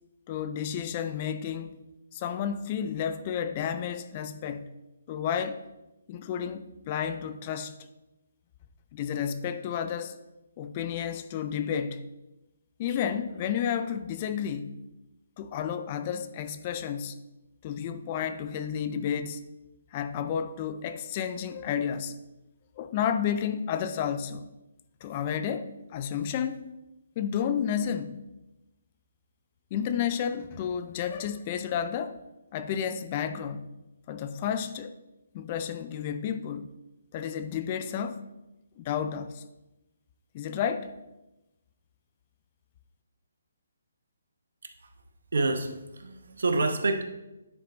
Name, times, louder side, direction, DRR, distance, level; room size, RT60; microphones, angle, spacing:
voice 1, 0.3-1.8 2.1-4.7 5.1-5.6 6.1-7.7 8.9-10.2 10.6-12.0 12.8-14.8 15.4-17.2 17.6-19.4 19.9-22.1 22.8-24.4 25.0-26.6 27.2-28.2 29.7-32.2 32.5-33.7 34.1-34.9 35.3-36.7 37.1-38.2 38.8-39.4 40.3-40.9, left 8 dB, 30° left, 0.5 m, -31 dB
voice 2, 45.3-47.0, right 3 dB, 75° right, 1.0 m, -27 dB
9.5 x 4.8 x 3.9 m
hypercardioid pair, 155°, 0 cm